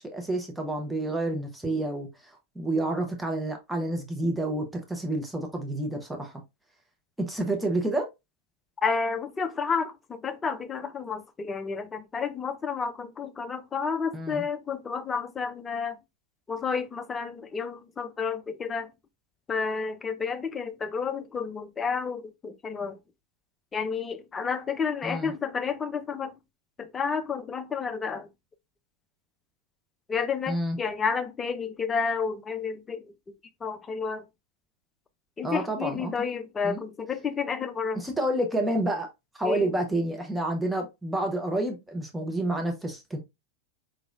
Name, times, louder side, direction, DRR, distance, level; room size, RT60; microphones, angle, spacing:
voice 1, 0.0-6.3 7.2-8.1 14.1-14.4 25.0-25.3 30.5-30.8 35.4-36.1 36.6-36.8 37.9-39.1 39.4-43.2, right 1 dB, 5° right, 0.9 m, -29 dB
voice 2, 8.8-16.0 16.5-18.9 19.5-23.0 23.7-26.4 26.8-28.3 30.1-33.1 33.6-34.2 35.4-38.0 39.4-39.7, left 5 dB, 20° left, 0.5 m, -31 dB
4.9 x 3.0 x 2.4 m
figure-of-eight pair, 90°, 0 cm